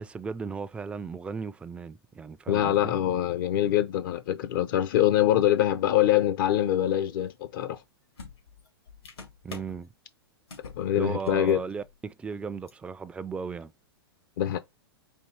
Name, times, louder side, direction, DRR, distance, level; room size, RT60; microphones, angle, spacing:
voice 1, 0.0-2.9 9.4-9.9 11.0-13.7, right 5 dB, 10° right, 0.3 m, -36 dB
voice 2, 2.5-7.8 10.7-11.6 14.4-14.6, left 12 dB, 55° left, 0.6 m, -24 dB
sound 1, 7.7-7.8 8.2-9.8 10.5-10.8 11.1-11.5 11.8-11.9 12.7-12.8, left 4 dB, 85° left, 2.1 m, -45 dB
4.4 x 2.8 x 4.3 m
hypercardioid pair, 110°, 13 cm